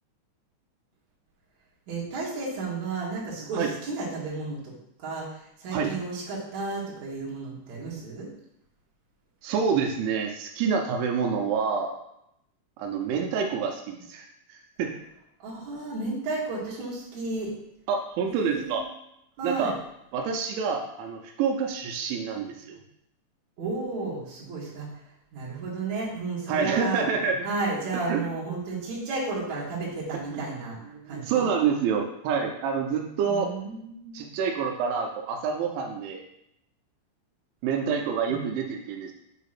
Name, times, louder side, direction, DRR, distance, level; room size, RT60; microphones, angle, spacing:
voice 1, 1.9-4.7 5.0-8.3 15.4-17.5 18.3-18.8 19.4-19.7 23.6-24.9 25.3-27.0 27.4-30.8 31.1-31.5 33.3-34.3 38.3-38.4, right 3 dB, 50° right, -5 dB, 2.6 m, -33 dB
voice 2, 9.4-11.9 12.8-15.0 17.9-18.8 19.4-19.8 20.1-22.8 26.5-27.4 28.1-28.2 30.3-30.4 30.9-33.5 34.1-36.2 37.6-39.1, right 6 dB, 85° right, 2 dB, 3.1 m, -27 dB
7.8 x 3.7 x 5.9 m, 0.79 s
omnidirectional pair, 5.4 m